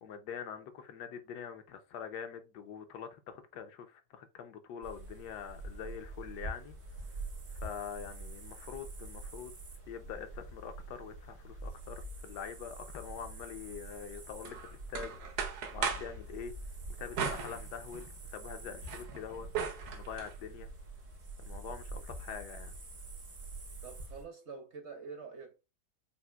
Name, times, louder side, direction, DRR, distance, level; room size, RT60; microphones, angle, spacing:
voice 1, 0.0-6.7 7.6-9.5 9.9-15.2 15.7-16.6 17.0-19.5 19.9-20.7 21.5-22.7, left 7 dB, 80° left, 1.3 m, -44 dB
sound 1, 4.8-24.2, right 2 dB, 85° right, 2.4 m, -46 dB
sound 2, 14.4-16.2 17.2-18.2 18.6-20.3, right 6 dB, 70° right, 1.3 m, -38 dB
voice 2, 23.8-25.6, right 5 dB, 55° right, 0.9 m, -46 dB
7.0 x 2.5 x 2.3 m
omnidirectional pair, 1.8 m